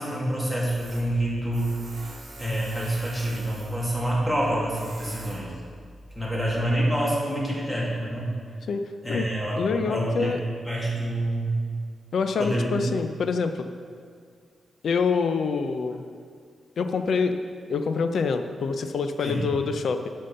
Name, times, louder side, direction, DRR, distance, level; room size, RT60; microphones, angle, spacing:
voice 1, 0.0-1.8 2.4-5.5 6.2-8.3 9.0-10.4 10.7-11.7 12.4-12.9 19.2-19.5, right 1 dB, 5° left, -6 dB, 2.3 m, -27 dB
Tools, 0.7-6.8, right 1 dB, 50° right, 1.9 m, -44 dB
voice 2, 8.7-9.3 9.6-10.4 12.1-13.7 14.8-16.0 16.8-17.4 17.7-20.1, left 5 dB, 65° left, 8 dB, 0.5 m, -26 dB
10.5 x 5.5 x 5.6 m, 2.1 s
wide cardioid pair, 130°, 0 cm